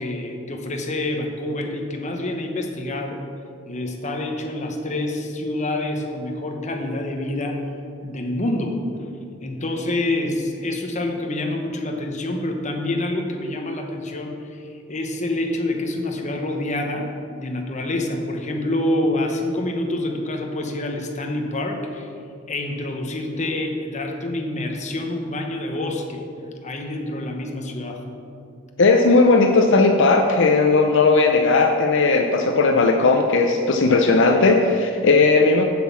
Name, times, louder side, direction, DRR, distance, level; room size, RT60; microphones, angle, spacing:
voice 1, 0.0-3.2 3.7-7.6 8.0-8.8 9.4-17.1 17.4-22.1 22.5-26.2 26.6-28.0, left 1 dB, 35° left, 2 dB, 1.0 m, -27 dB
voice 2, 28.8-35.6, left 3 dB, 65° left, 3 dB, 0.6 m, -16 dB
7.3 x 6.1 x 7.4 m, 2.5 s
head